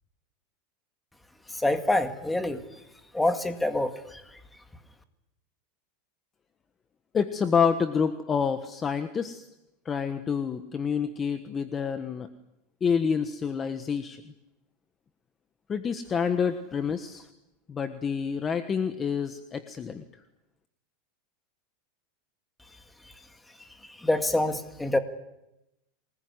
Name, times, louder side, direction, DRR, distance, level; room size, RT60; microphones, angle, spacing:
voice 1, 1.6-2.6 3.1-4.2 24.0-25.0, left 1 dB, 5° left, 8 dB, 2.0 m, -26 dB
voice 2, 7.1-9.5 9.8-12.3 12.8-14.2 15.7-17.3 17.7-20.0, left 6 dB, 20° left, 9 dB, 1.3 m, -28 dB
27.0 x 20.0 x 9.7 m, 0.92 s
supercardioid pair, 145°, 0 cm